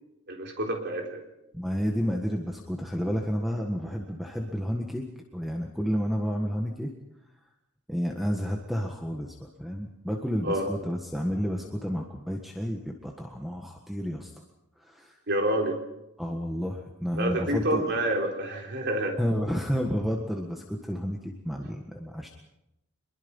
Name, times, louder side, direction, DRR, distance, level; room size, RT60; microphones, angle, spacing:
voice 1, 0.3-1.2 10.4-10.7 15.3-15.8 17.2-19.2, right 1 dB, 50° right, 1 dB, 4.0 m, -28 dB
voice 2, 1.5-5.0 5.3-6.9 7.9-14.3 14.8-15.2 16.2-17.9 19.2-22.3, equal, ahead, 1 dB, 1.6 m, -31 dB
24.0 x 22.5 x 5.5 m, 0.88 s
head